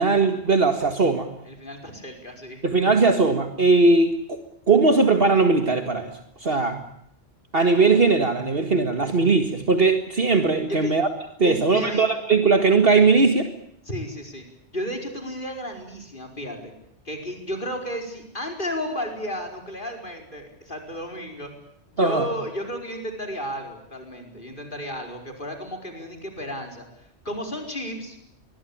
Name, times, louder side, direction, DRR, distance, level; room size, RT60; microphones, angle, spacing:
voice 1, 0.0-1.3 2.6-4.4 4.7-6.1 6.4-6.8 7.5-11.1 11.4-13.5 22.0-22.3, right 3 dB, 55° right, 6 dB, 2.1 m, -19 dB
voice 2, 1.5-2.6 10.7-11.0 11.4-12.0 13.9-14.4 14.7-16.7 17.1-21.5 21.9-28.2, equal, 45° left, 4 dB, 5.1 m, -33 dB
24.5 x 22.0 x 8.7 m, 0.74 s
omnidirectional pair, 1.2 m